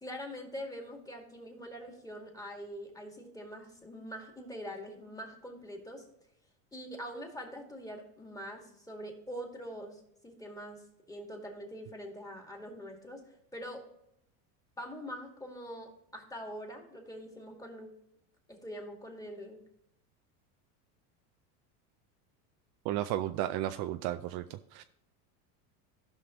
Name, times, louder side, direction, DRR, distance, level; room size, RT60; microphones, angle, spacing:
voice 1, 0.0-6.1 6.7-13.8 14.8-17.9 18.5-19.6, equal, 10° left, 1 dB, 2.0 m, -44 dB
voice 2, 22.9-24.4 24.7-24.8, right 13 dB, 55° right, 9 dB, 0.5 m, -33 dB
16.0 x 5.7 x 3.0 m, 0.78 s
supercardioid pair, 110°, 45 cm